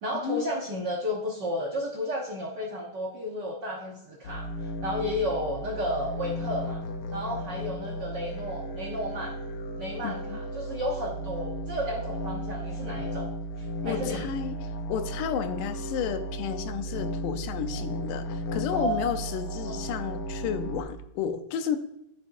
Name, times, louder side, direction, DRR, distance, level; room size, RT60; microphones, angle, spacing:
voice 1, 0.0-6.8 7.1-9.3 9.8-13.3 13.6-14.3 18.7-19.1 19.6-19.9, equal, 85° right, -2 dB, 0.9 m, -32 dB
sound 1, 4.2-20.8, equal, 70° left, 1.5 m, -35 dB
voice 2, 10.0-10.4 13.8-14.6 14.9-21.8, left 8 dB, 90° left, 8 dB, 2.3 m, -32 dB
10.5 x 7.1 x 2.6 m, 0.86 s
omnidirectional pair, 3.6 m